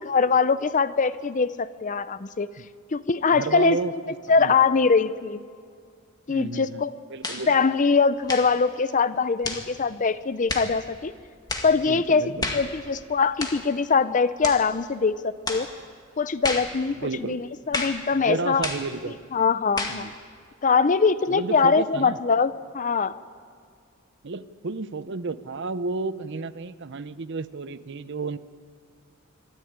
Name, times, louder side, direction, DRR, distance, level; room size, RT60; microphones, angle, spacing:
voice 1, 0.0-2.5 2.9-4.0 4.3-5.4 6.3-6.9 7.5-11.1 11.6-15.7 16.2-18.7 19.3-20.1 20.6-23.2, left 5 dB, 35° left, 15 dB, 0.6 m, -22 dB
voice 2, 3.3-3.9 4.4-4.5 6.3-6.8 7.1-7.5 11.9-12.6 16.9-17.4 18.1-19.2 19.9-20.1 21.3-22.2 24.2-28.4, right 3 dB, 55° right, 14 dB, 0.7 m, -32 dB
sound 1, 7.2-7.5 8.2-8.6 9.4-9.7 10.5-10.7 11.5-11.7 12.4-12.7 13.4-13.6 14.4-14.6 15.5-15.7 16.4-16.7 17.7-18.0 18.6-18.9 19.8-20.0, left 2 dB, 20° left, 1.9 m, -30 dB
24.5 x 13.5 x 8.8 m, 2.1 s
head